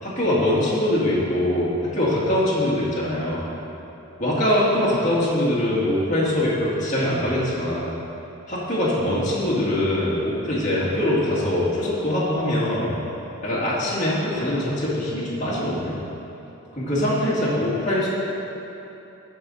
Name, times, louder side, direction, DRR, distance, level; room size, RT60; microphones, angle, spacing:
voice 1, 0.0-3.5 4.2-7.9 8.5-12.9 13.4-16.0 16.7-18.1, left 1 dB, 35° left, -8 dB, 2.1 m, -23 dB
15.0 x 5.6 x 4.2 m, 3.0 s
head